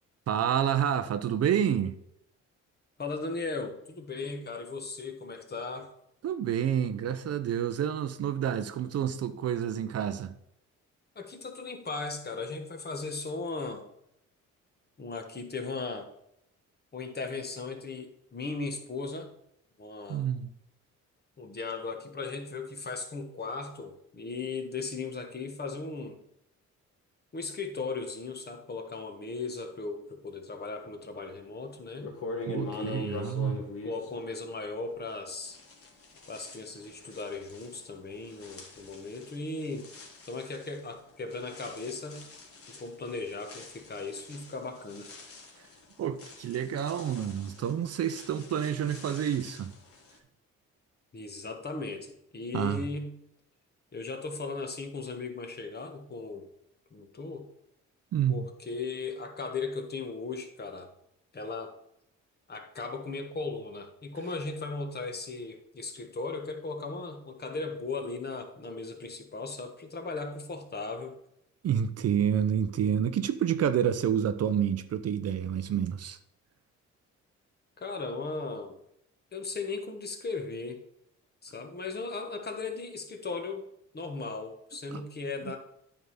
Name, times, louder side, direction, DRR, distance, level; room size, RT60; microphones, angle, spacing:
voice 1, 0.3-2.0 6.2-10.3 20.1-20.5 32.5-33.6 46.0-49.7 52.5-52.8 58.1-58.4 71.6-76.2 84.9-85.0 85.4-85.5, right 9 dB, 55° right, 0.6 m, -29 dB
voice 2, 3.0-5.9 11.1-13.9 15.0-16.1 16.9-19.3 19.8-20.3 21.4-26.2 27.3-32.1 32.7-33.4 33.8-35.6 36.3-39.9 40.2-42.3 42.7-45.1 51.1-53.1 53.9-56.4 56.9-57.5 58.3-60.9 61.3-61.7 62.5-71.1 77.8-78.7 79.3-80.8 81.4-83.6 83.9-85.6, left 3 dB, 35° left, 1.4 m, -37 dB
sound 1, 31.5-31.6 32.0-35.1 35.4-50.2, left 3 dB, 50° left, 1.8 m, -45 dB
9.4 x 3.7 x 5.5 m
cardioid pair, 90°, 30 cm